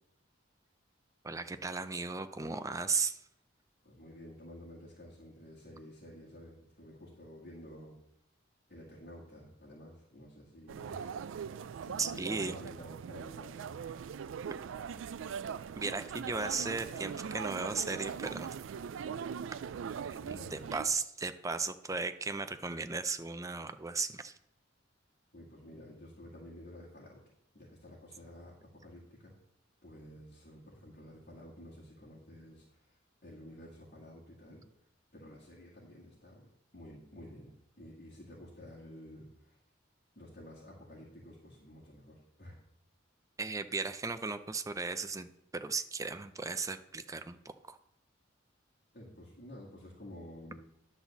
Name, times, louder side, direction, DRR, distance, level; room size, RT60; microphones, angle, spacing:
voice 1, 1.2-3.2 12.0-12.5 15.8-18.5 20.5-24.3 43.4-45.3 45.5-47.8, right 4 dB, 15° right, 10 dB, 0.5 m, -36 dB
voice 2, 3.8-8.0 8.7-11.1 11.8-13.8 20.2-20.9 25.3-27.2 27.5-29.3 29.8-39.6 40.2-42.6 48.9-50.6, left 1 dB, 55° left, -5 dB, 2.0 m, -51 dB
sound 1, 10.7-20.8, right 7 dB, 80° right, 0.3 m, -41 dB
10.5 x 4.1 x 7.0 m, 0.77 s
head